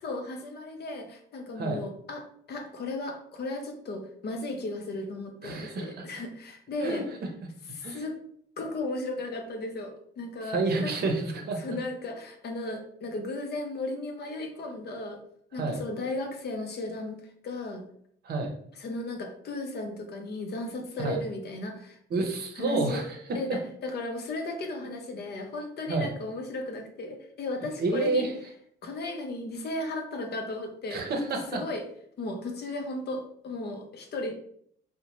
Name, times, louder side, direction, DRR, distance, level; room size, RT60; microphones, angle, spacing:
voice 1, 0.0-7.1 7.7-8.2 8.6-10.9 11.6-15.2 15.5-17.2 17.4-17.8 18.7-22.0 22.6-23.0 23.3-28.3 28.8-31.0 31.5-31.8 32.2-34.3, left 2 dB, 55° left, 4 dB, 0.6 m, -35 dB
voice 2, 5.4-6.0 6.8-7.0 7.8-8.0 10.5-11.6 15.6-15.8 18.2-18.5 21.0-21.2 22.1-23.2 25.9-26.1 27.8-28.3 30.9-31.6, right 3 dB, 55° right, 3 dB, 0.7 m, -29 dB
2.7 x 2.1 x 2.9 m, 0.65 s
cardioid pair, 90°, 20 cm